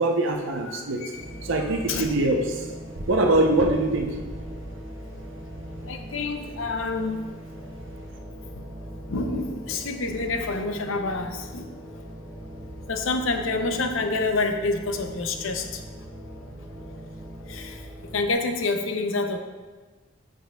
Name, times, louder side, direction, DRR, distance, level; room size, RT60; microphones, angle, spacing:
voice 1, 0.0-1.0 1.4-2.6 3.1-4.1, right 2 dB, 65° right, 3 dB, 0.6 m, -23 dB
voice 2, 0.7-1.2 1.9-2.1 5.8-7.2 9.1-11.7 12.9-15.8 17.5-19.4, left 3 dB, 75° left, 6 dB, 0.6 m, -28 dB
sound 1, 1.1-18.3, equal, 45° right, 1.3 m, -40 dB
9.1 x 5.3 x 2.2 m, 1.3 s
head